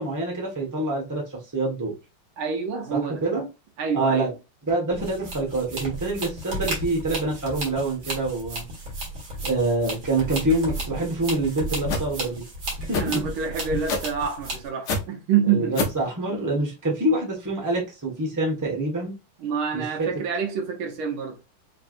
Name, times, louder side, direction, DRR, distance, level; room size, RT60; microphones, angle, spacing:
voice 1, 0.0-1.9 2.9-3.5 3.9-4.3 4.7-8.6 9.4-12.4 12.9-13.2 15.5-19.2 19.7-20.1, right 2 dB, 10° right, 1.2 m, -26 dB
voice 2, 2.4-3.2 3.8-4.3 13.0-15.7 19.4-21.4, right 7 dB, 75° right, 1.8 m, -27 dB
sound 1, 4.9-14.7, right 1 dB, 45° right, 1.8 m, -33 dB
sound 2, 11.9-12.1 12.9-13.1 13.9-14.1 14.9-15.0 15.7-16.0, left 3 dB, 60° left, 1.4 m, -24 dB
4.5 x 3.2 x 2.6 m
omnidirectional pair, 2.3 m